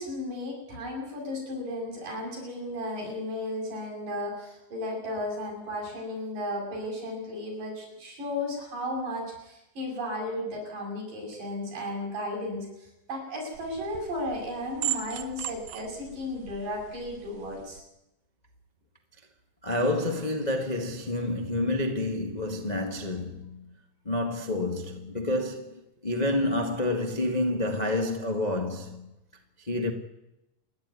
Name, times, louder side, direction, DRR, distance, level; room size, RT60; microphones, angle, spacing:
voice 1, 0.0-17.8, left 1 dB, 60° right, 9.0 m, -34 dB
sound 1, 13.5-17.8, right 12 dB, 80° right, 3.0 m, -38 dB
voice 2, 19.6-23.7 24.0-29.1 29.6-29.9, left 1 dB, 40° left, 0.6 m, -29 dB
28.5 x 11.0 x 9.7 m
omnidirectional pair, 4.2 m